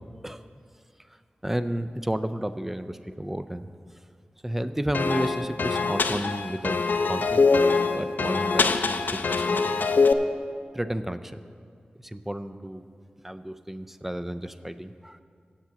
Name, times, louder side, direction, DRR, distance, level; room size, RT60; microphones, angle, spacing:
voice 1, 1.4-3.7 4.4-6.8 7.1-7.4 7.9-9.6 10.7-11.4 12.0-12.8 13.2-15.2, right 1 dB, 10° right, 12 dB, 0.4 m, -32 dB
sound 1, 4.9-10.1, left 4 dB, 85° left, 0.4 m, -23 dB
8.1 x 7.3 x 7.5 m, 2.1 s
wide cardioid pair, 85°, 3 cm